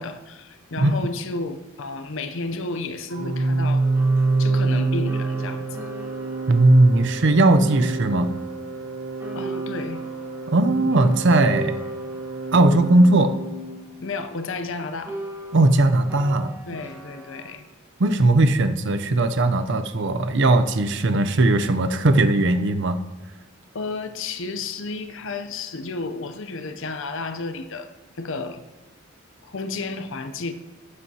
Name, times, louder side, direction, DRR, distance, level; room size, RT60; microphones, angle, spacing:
voice 1, 0.0-3.9 4.4-5.9 9.3-10.0 14.0-15.2 16.7-17.6 23.7-27.9 28.2-28.6 29.4-30.5, left 3 dB, 65° left, 0.7 m, -32 dB
Organ, 3.1-13.9, right 3 dB, 75° right, 1.2 m, -27 dB
sound 1, 3.8-8.9 9.2-14.7 15.0-17.6, equal, 15° right, 1.7 m, -40 dB
voice 2, 6.5-8.3 10.5-11.8 12.5-13.3 15.5-16.6 18.0-23.0, right 2 dB, 60° right, 0.6 m, -18 dB
12.0 x 8.4 x 2.8 m
head